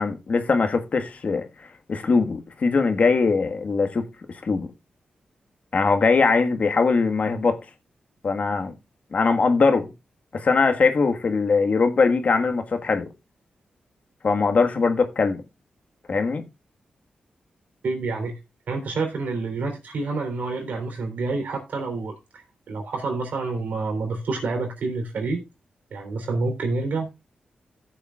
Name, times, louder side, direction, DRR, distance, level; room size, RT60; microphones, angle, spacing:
voice 1, 0.0-4.0 4.4-4.7 5.7-7.6 8.2-8.7 9.1-9.9 10.3-13.1 14.2-15.4 16.1-16.4, left 4 dB, 55° left, 1.5 m, -21 dB
voice 2, 17.8-18.4 18.7-25.4 25.9-27.1, right 3 dB, 80° right, 3.4 m, -28 dB
16.0 x 6.9 x 2.4 m
cardioid pair, 75°, 3 cm